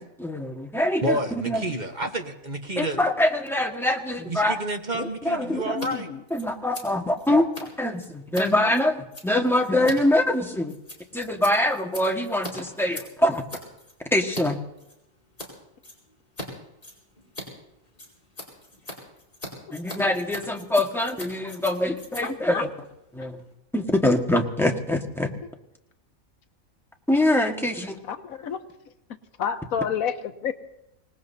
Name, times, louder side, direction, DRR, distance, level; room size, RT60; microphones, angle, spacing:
voice 1, 0.0-1.2 1.5-1.6 2.8-4.6 5.0-5.8 6.3-10.7 11.1-13.4 14.1-14.6 19.7-22.7 23.1-23.4 23.7-25.3 27.1-28.0, left 1 dB, ahead, 2 dB, 1.5 m, -24 dB
voice 2, 1.0-3.0 4.3-6.1, right 1 dB, 35° right, 4 dB, 1.3 m, -29 dB
voice 3, 5.5-6.2 22.2-22.6 28.0-28.6 29.4-30.5, left 7 dB, 85° left, 9 dB, 1.4 m, -30 dB
Scissors, 5.7-5.9 6.1-14.4 14.8-15.5 15.8-16.5 16.7-23.5, left 1 dB, 35° left, 4.7 m, -41 dB
26.0 x 19.5 x 2.8 m, 0.87 s
omnidirectional pair, 1.4 m